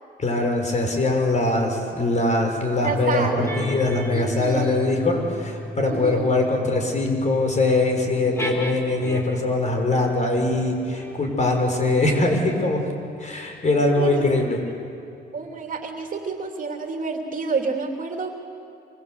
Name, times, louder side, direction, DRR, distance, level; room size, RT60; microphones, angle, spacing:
voice 1, 0.2-12.8 13.2-14.6, left 2 dB, 35° left, 3 dB, 6.4 m, -22 dB
voice 2, 2.8-3.6 4.1-4.9 5.9-6.5 14.0-14.3 15.3-18.3, right 4 dB, 40° right, 3 dB, 3.1 m, -29 dB
sound 1, 3.2-9.6 10.3-15.3, equal, 15° left, 3.4 m, -36 dB
26.0 x 25.0 x 8.3 m, 2.5 s
cardioid pair, 90°, 20 cm